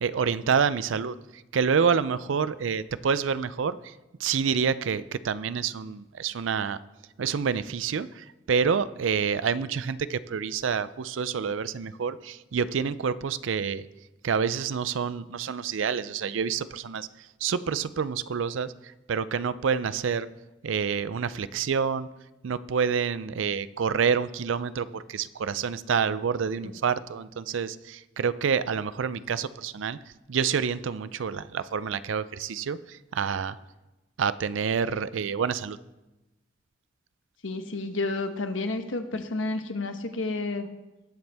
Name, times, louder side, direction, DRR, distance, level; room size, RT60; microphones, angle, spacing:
voice 1, 0.0-3.9 4.2-6.8 7.2-13.9 14.2-18.7 19.1-20.3 20.6-22.1 22.4-30.0 30.3-33.6 34.2-35.8, right 6 dB, 80° right, 16 dB, 0.5 m, -28 dB
voice 2, 37.4-40.7, left 2 dB, 85° left, 7 dB, 1.1 m, -30 dB
19.5 x 8.0 x 3.5 m, 1.0 s
head